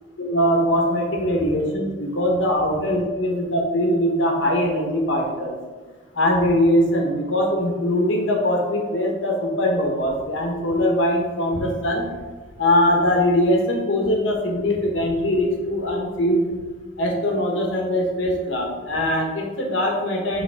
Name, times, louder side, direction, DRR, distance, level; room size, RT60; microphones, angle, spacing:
voice 1, 0.2-5.5 6.1-12.1 12.6-16.5 17.0-20.4, left 1 dB, 85° left, 1 dB, 1.2 m, -21 dB
7.1 x 3.2 x 4.6 m, 1.3 s
head